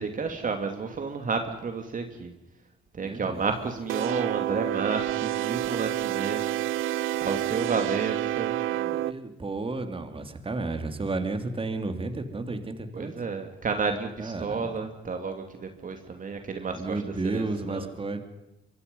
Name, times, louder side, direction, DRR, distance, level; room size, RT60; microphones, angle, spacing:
voice 1, 0.0-2.3 2.9-6.6 7.2-8.6 12.9-17.9, right 4 dB, 40° right, 5 dB, 2.8 m, -31 dB
voice 2, 3.0-3.5 8.7-13.1 14.2-14.7 16.7-18.2, right 3 dB, 25° right, 7 dB, 3.1 m, -32 dB
sound 1, 3.9-9.1, right 13 dB, 85° right, 0.7 m, -28 dB
25.5 x 23.0 x 5.5 m, 0.98 s
cardioid pair, 90°, 20 cm